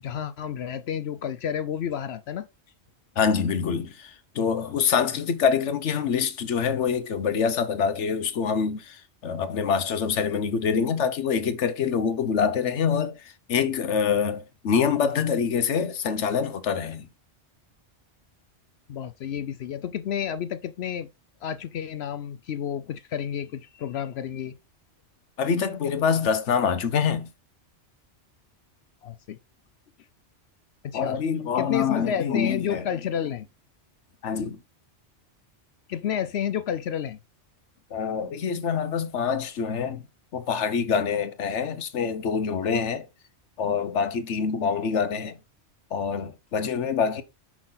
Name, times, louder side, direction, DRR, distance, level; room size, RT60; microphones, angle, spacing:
voice 1, 0.0-2.5 18.9-21.1 21.4-24.5 29.0-29.4 30.8-31.2 31.6-33.5 35.9-37.2, left 9 dB, 70° left, 0.9 m, -30 dB
voice 2, 3.2-17.1 25.4-27.3 30.9-32.8 34.2-34.6 37.9-40.0 40.3-43.1 43.6-45.4 45.9-47.2, left 6 dB, 90° left, 1.2 m, -25 dB
6.1 x 6.0 x 3.9 m
omnidirectional pair, 1.2 m